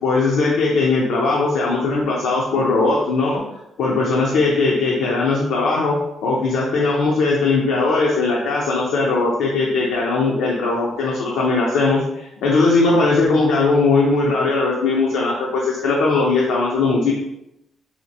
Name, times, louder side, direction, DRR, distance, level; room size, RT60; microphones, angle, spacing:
voice 1, 0.0-3.4 3.8-6.0 6.2-17.1, left 3 dB, 85° left, -3 dB, 0.6 m, -19 dB
4.1 x 2.5 x 2.7 m, 0.85 s
cardioid pair, 90°, 0 cm